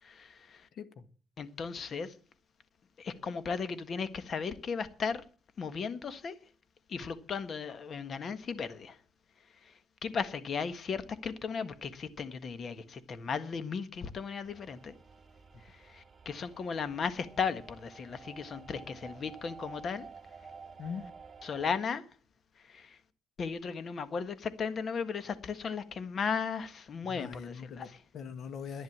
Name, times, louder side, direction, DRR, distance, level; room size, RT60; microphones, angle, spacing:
voice 1, 0.0-0.7 1.4-2.1 3.0-5.2 5.6-6.4 6.9-9.0 9.6-14.9 15.6-20.1 21.4-22.0 22.6-23.0 23.4-28.0, left 5 dB, 50° left, 1.5 m, -36 dB
voice 2, 0.7-1.1 20.8-21.0 27.1-27.9 28.1-28.8, left 6 dB, 65° left, 1.6 m, -41 dB
sound 1, 14.4-21.7, right 5 dB, 30° right, 2.7 m, -52 dB
11.0 x 10.5 x 7.3 m
cardioid pair, 90°, 0 cm